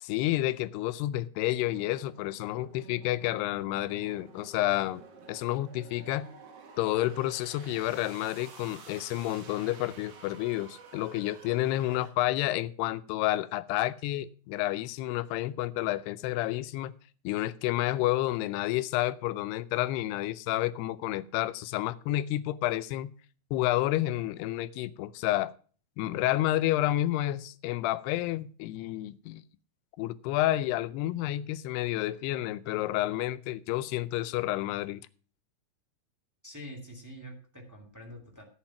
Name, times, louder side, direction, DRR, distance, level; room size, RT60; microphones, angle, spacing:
voice 1, 0.0-5.0 5.3-6.3 6.8-16.9 17.2-23.1 23.5-25.5 26.0-29.4 30.0-35.0, left 15 dB, 90° left, 15 dB, 2.7 m, -30 dB
sound 1, 1.6-12.1, right 5 dB, 50° right, 2.2 m, -51 dB
voice 2, 36.4-38.4, equal, 10° right, 1 dB, 1.2 m, -46 dB
11.5 x 8.4 x 5.7 m, 0.40 s
omnidirectional pair, 4.6 m